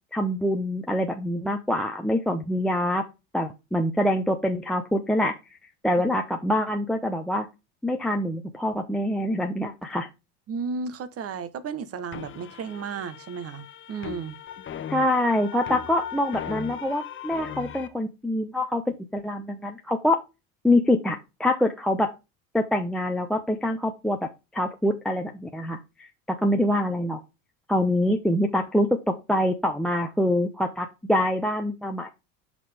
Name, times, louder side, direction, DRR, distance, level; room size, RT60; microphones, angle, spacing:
voice 1, 0.1-3.0 3.3-5.4 5.8-7.5 7.8-10.1 14.9-20.2 20.6-22.1 22.5-27.2 27.7-32.1, left 1 dB, ahead, 0.8 m, -25 dB
voice 2, 10.5-14.4, right 5 dB, 40° right, 1.1 m, -33 dB
sound 1, 12.1-17.9, left 9 dB, 35° left, 1.1 m, -38 dB
6.2 x 5.7 x 3.5 m
supercardioid pair, 110°, 37 cm